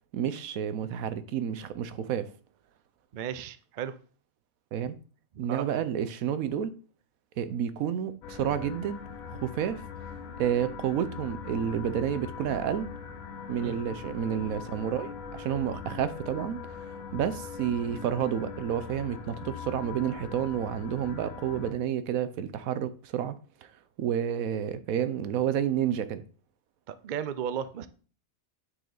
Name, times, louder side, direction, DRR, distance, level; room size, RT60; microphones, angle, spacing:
voice 1, 0.1-2.3 4.7-5.0 5.4-6.7 7.4-9.0 9.4-9.8 10.4-12.9 13.5-16.8 17.1-23.3 24.0-26.2, right 9 dB, 80° right, 1.1 m, -30 dB
voice 2, 3.1-4.0 5.3-5.7 13.6-13.8 26.9-27.9, right 9 dB, 55° right, 0.5 m, -35 dB
sound 1, 8.2-21.7, left 6 dB, 85° left, 1.3 m, -41 dB
9.1 x 4.7 x 3.9 m
omnidirectional pair, 1.4 m